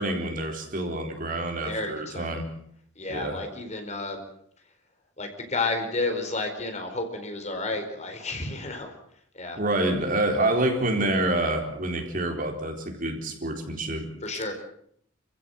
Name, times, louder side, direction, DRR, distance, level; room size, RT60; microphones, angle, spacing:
voice 1, 0.0-2.5 3.1-3.4 9.6-14.1, right 1 dB, 45° right, 3 dB, 4.2 m, -27 dB
voice 2, 1.6-2.4 3.0-4.2 5.2-8.9 9.3-9.6 14.2-14.5, left 3 dB, 35° left, 5 dB, 4.6 m, -31 dB
29.5 x 16.0 x 7.9 m, 0.68 s
head